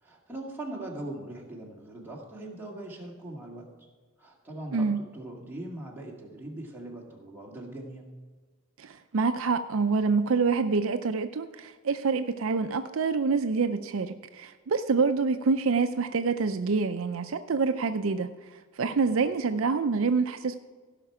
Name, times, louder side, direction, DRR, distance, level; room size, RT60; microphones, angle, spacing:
voice 1, 0.0-3.7 4.2-8.1, right 1 dB, 10° right, -3 dB, 2.1 m, -40 dB
voice 2, 8.8-20.5, right 4 dB, 65° right, 8 dB, 0.5 m, -26 dB
16.0 x 5.9 x 4.8 m, 1.4 s
head